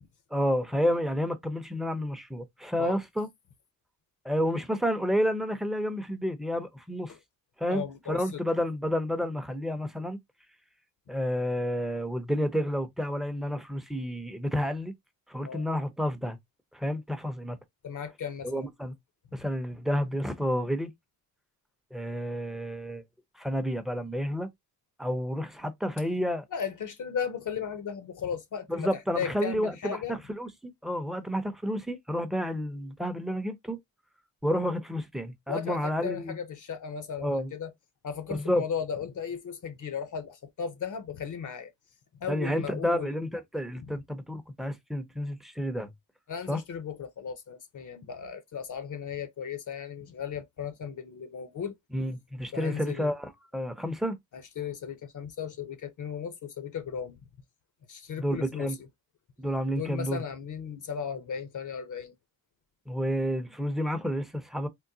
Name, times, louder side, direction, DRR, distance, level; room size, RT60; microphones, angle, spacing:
voice 1, 0.3-3.3 4.2-7.1 7.6-10.2 11.1-14.9 15.3-16.4 16.7-17.6 18.4-18.9 19.3-20.9 21.9-23.0 23.4-24.5 25.0-26.4 28.7-33.8 34.4-36.4 37.2-37.5 38.3-38.6 42.3-45.9 46.5-46.6 51.9-54.2 58.2-58.8 59.4-60.2 62.9-64.7, equal, ahead, 0.6 m, -30 dB
voice 2, 7.7-8.4 15.4-15.7 17.8-18.7 19.3-19.4 26.5-30.1 35.5-37.7 38.0-41.7 42.2-43.2 46.3-51.7 52.5-53.1 54.3-57.2 57.9-58.7 59.7-62.1, left 7 dB, 55° left, 0.7 m, -36 dB
3.8 x 2.1 x 2.6 m
cardioid pair, 70°, 38 cm